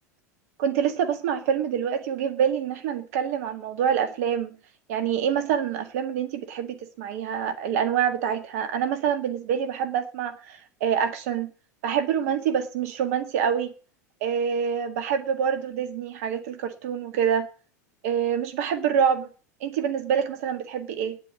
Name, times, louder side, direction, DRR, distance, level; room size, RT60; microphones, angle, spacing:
voice 1, 0.6-4.5 4.9-11.5 11.8-13.7 14.2-17.5 18.0-19.3 19.6-21.2, right 8 dB, 60° right, 9 dB, 1.9 m, -26 dB
10.0 x 9.4 x 8.4 m, 0.38 s
figure-of-eight pair, 80°, 9 cm